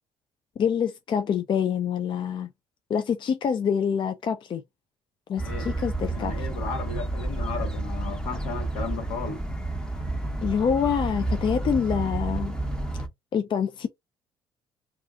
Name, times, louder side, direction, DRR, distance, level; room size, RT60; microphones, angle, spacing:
voice 1, 0.6-2.5 2.9-4.6 5.3-6.5 10.4-12.6 13.3-13.9, left 7 dB, 45° left, 0.5 m, -26 dB
voice 2, 5.4-5.8 6.1-9.4, left 5 dB, 75° left, 1.0 m, -35 dB
sound 1, 5.4-13.1, right 2 dB, 5° left, 0.9 m, -30 dB
2.4 x 2.4 x 3.6 m
hypercardioid pair, 60°, 12 cm